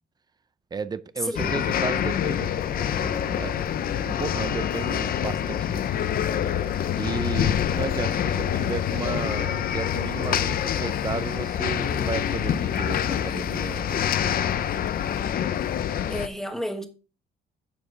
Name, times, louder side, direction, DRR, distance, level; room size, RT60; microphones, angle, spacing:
voice 1, 0.7-3.6 4.0-5.9 7.0-14.5, right 5 dB, 20° right, 0.5 m, -34 dB
voice 2, 1.2-1.5 16.1-16.9, equal, ahead, 1.3 m, -30 dB
sound 1, 1.4-16.3, left 9 dB, 45° left, 0.6 m, -26 dB
9.6 x 7.2 x 3.9 m
cardioid pair, 165°, 20 cm